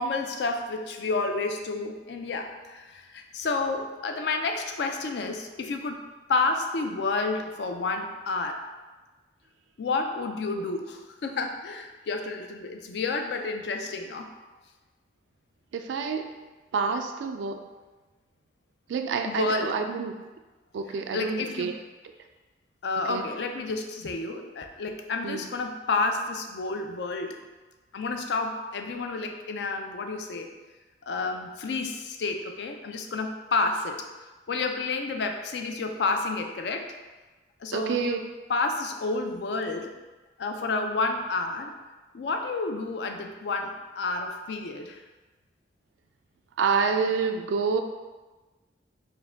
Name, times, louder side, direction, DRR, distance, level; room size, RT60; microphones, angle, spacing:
voice 1, 0.0-6.0 6.3-8.6 9.8-14.3 19.2-19.8 20.9-21.7 22.8-27.4 27.9-30.5 31.1-34.0 34.5-36.9 37.6-38.2 38.5-39.9 40.4-41.7 42.1-45.0, left 3 dB, 65° left, 5 dB, 0.4 m, -30 dB
voice 2, 15.7-16.2 16.7-17.6 18.9-20.2 20.7-21.7 23.1-23.2 25.2-25.4 37.7-38.2 46.6-47.8, right 5 dB, 85° right, 6 dB, 0.3 m, -27 dB
4.6 x 2.2 x 3.4 m, 1.2 s
head